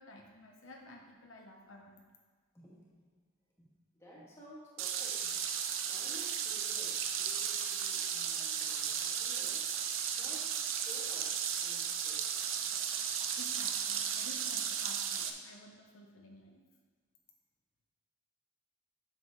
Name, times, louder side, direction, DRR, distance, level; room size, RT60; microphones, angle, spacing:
voice 1, 0.0-2.0 13.4-16.6, left 1 dB, 85° left, 1 dB, 1.1 m, -53 dB
voice 2, 2.5-2.9 3.6-3.7 3.9-5.4 5.8-9.6 10.2-12.5, equal, 15° left, -7 dB, 2.4 m, -54 dB
sound 1, 4.8-15.3, right 8 dB, 75° right, 0.7 m, -35 dB
8.3 x 7.0 x 4.1 m, 1.5 s
head